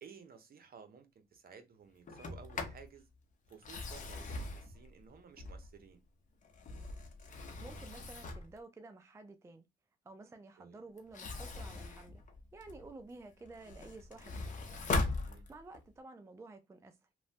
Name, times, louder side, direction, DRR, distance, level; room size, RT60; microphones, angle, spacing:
voice 1, 0.0-3.0 3.5-6.0 10.6-10.8 15.1-15.4, right 6 dB, 50° right, 0.8 m, -55 dB
Sliding door, 2.1-2.9 3.5-5.9 6.4-8.6 11.0-12.9 13.4-15.9, left 3 dB, 40° left, 0.7 m, -40 dB
voice 2, 7.6-9.7 10.0-12.2 12.5-14.6 15.1-17.1, right 3 dB, 15° right, 0.4 m, -52 dB
3.0 x 2.2 x 2.7 m
cardioid pair, 90°, 20 cm